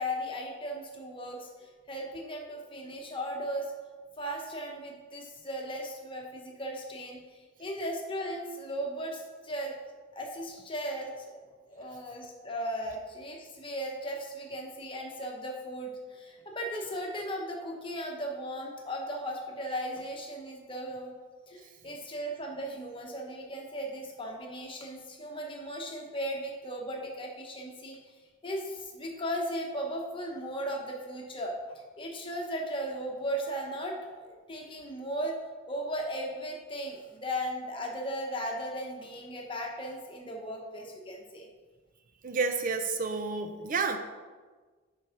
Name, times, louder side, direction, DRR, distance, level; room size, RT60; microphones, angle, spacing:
voice 1, 0.0-3.7 4.2-9.7 10.1-11.4 11.7-21.1 21.5-28.1 28.4-31.6 32.0-35.3 35.7-41.5, equal, 25° left, 1 dB, 1.0 m, -37 dB
voice 2, 42.2-44.0, right 4 dB, 45° right, 7 dB, 0.5 m, -30 dB
6.2 x 4.7 x 5.7 m, 1.4 s
head